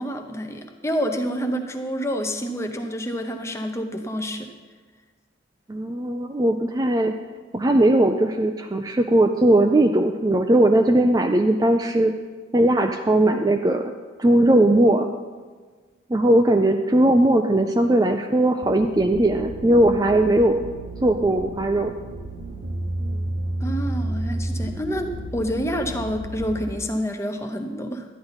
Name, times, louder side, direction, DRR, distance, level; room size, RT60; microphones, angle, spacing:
voice 1, 0.0-4.5 23.6-28.1, equal, 15° left, 5 dB, 0.7 m, -28 dB
voice 2, 5.7-7.1 7.5-12.1 12.5-13.8 14.2-15.1 16.1-20.6 21.0-21.9, right 1 dB, 20° right, 4 dB, 0.3 m, -19 dB
sound 1, 18.6-26.6, right 1 dB, 65° right, 1.1 m, -31 dB
12.0 x 10.0 x 4.0 m, 1.5 s
head